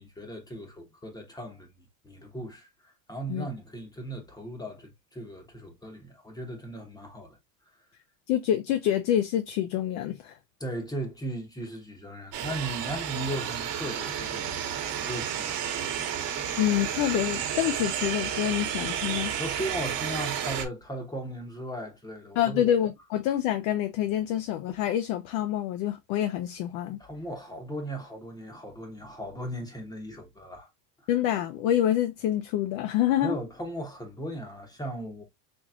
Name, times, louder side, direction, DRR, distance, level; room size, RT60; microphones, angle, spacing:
voice 1, 0.0-1.7 2.0-7.4 10.6-14.6 15.0-15.6 19.4-22.7 27.0-30.7 33.2-35.2, right 1 dB, 10° left, 1.0 m, -37 dB
voice 2, 8.3-10.4 16.6-19.3 22.4-27.0 31.1-33.4, left 11 dB, 45° left, 0.6 m, -27 dB
sound 1, 12.3-20.6, right 9 dB, 45° right, 1.3 m, -31 dB
4.4 x 3.0 x 2.3 m
supercardioid pair, 135°, 48 cm